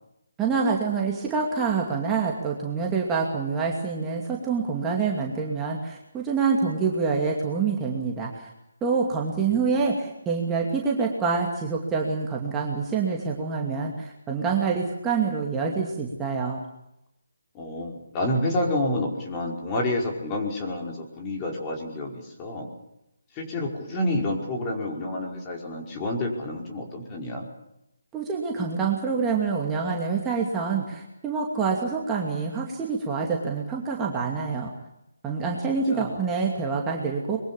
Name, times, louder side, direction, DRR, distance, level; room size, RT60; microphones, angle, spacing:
voice 1, 0.4-8.5 8.8-16.6 28.1-34.7 35.2-37.4, right 5 dB, 15° right, -2 dB, 2.6 m, -26 dB
voice 2, 9.3-9.7 17.5-22.7 23.3-27.5 35.9-36.2, left 1 dB, 20° left, 0 dB, 5.2 m, -29 dB
24.5 x 22.5 x 7.2 m, 0.85 s
figure-of-eight pair, 150°, 0 cm